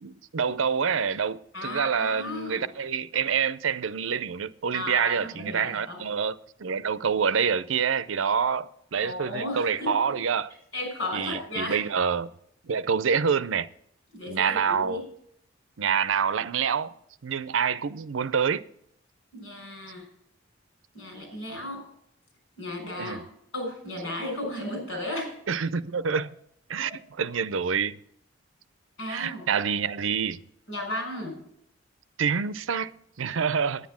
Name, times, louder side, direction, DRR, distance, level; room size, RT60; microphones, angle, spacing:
voice 1, 0.0-10.5 11.1-12.3 12.6-13.7 14.3-15.0 15.8-17.0 17.2-18.6 23.0-23.2 25.5-26.3 26.7-28.0 29.1-30.4 32.2-33.9, right 6 dB, 90° right, 0.6 m, -27 dB
voice 2, 1.5-2.6 4.7-6.0 9.0-10.0 10.7-11.8 14.1-15.0 19.3-20.0 20.9-21.8 22.6-23.2 23.5-25.3 29.0-29.4 30.7-31.4, left 1 dB, 85° left, 6.0 m, -34 dB
9.9 x 9.4 x 7.4 m
head